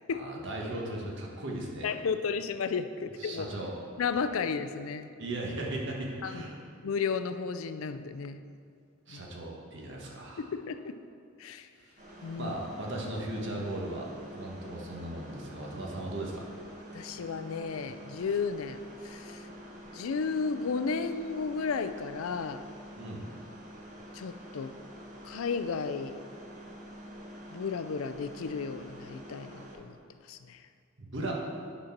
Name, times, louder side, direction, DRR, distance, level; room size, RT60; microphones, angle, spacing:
voice 1, 0.1-1.9 3.2-3.7 5.2-6.6 9.1-10.5 11.8-11.9 12.4-14.1 14.3-16.4 23.0-23.2 31.0-31.3, right 1 dB, 60° right, -1 dB, 1.4 m, -37 dB
voice 2, 1.8-3.5 4.0-5.1 6.2-6.4 6.8-8.4 9.1-9.2 10.5-10.9 11.4-11.7 12.2-12.5 16.9-19.5 19.9-22.6 24.1-24.7 25.2-26.2 27.5-30.0 30.3-30.6, left 5 dB, 80° left, 10 dB, 0.4 m, -33 dB
sound 1, 12.0-29.8, equal, 40° right, 1.1 m, -47 dB
9.2 x 4.3 x 5.8 m, 2.3 s
head